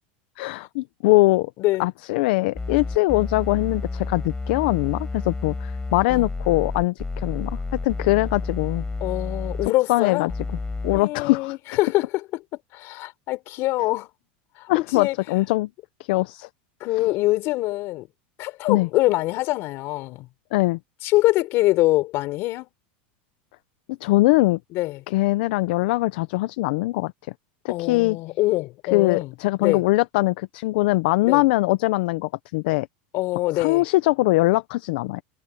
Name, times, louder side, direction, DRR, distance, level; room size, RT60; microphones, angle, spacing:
voice 1, 0.4-1.5 1.8-7.6 7.8-8.8 9.6-10.3 10.8-11.6 14.7-15.7 16.1-16.5 16.9-17.1 18.7-18.9 20.5-20.8 23.9-24.6 25.1-27.1 27.6-28.2 28.9-32.9 33.5-35.2, left 20 dB, 70° left, 0.7 m, -22 dB
sound 1, 2.6-9.7 10.3-11.0, left 3 dB, 10° left, 6.2 m, -30 dB
voice 2, 9.0-10.3 10.9-12.4 12.7-14.1 14.6-15.2 16.8-18.1 18.4-20.3 21.0-22.7 24.7-25.0 27.7-29.3 29.6-29.8 31.2-31.4 33.1-33.8, left 18 dB, 50° left, 4.0 m, -24 dB
supercardioid pair, 135°, 6 cm